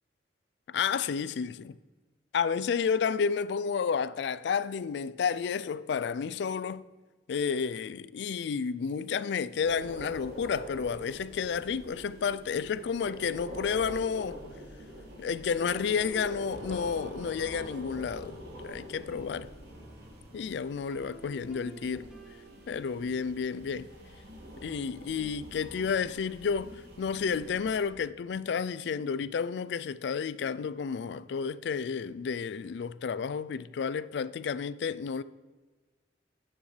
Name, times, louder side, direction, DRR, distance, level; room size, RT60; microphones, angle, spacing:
voice 1, 0.7-1.7 2.3-6.8 7.3-14.4 15.2-19.5 20.3-22.1 22.7-23.9 24.6-35.2, left 6 dB, 65° left, 0.3 m, -31 dB
sound 1, 9.6-27.9, equal, 55° right, 1.7 m, -45 dB
sound 2, 14.2-23.7, right 2 dB, ahead, 0.9 m, -52 dB
10.0 x 8.7 x 3.2 m
head